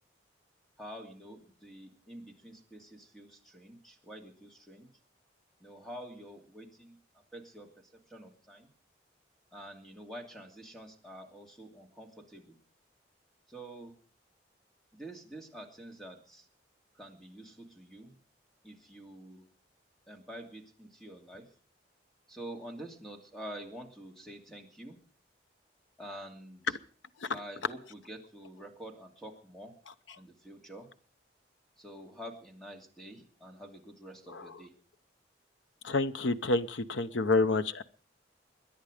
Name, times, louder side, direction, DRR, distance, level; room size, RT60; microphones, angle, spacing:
voice 1, 0.8-4.9 5.6-7.0 7.3-7.7 8.1-8.7 9.5-12.6 13.5-13.9 14.9-16.5 16.9-18.1 18.6-19.5 20.1-21.5 22.3-25.0 26.0-26.8 27.3-29.7 30.2-30.9 31.8-34.7, right 1 dB, ahead, 2 dB, 2.6 m, -47 dB
voice 2, 35.8-37.8, left 3 dB, 80° left, 12 dB, 0.8 m, -28 dB
23.5 x 10.5 x 5.1 m, 0.44 s
head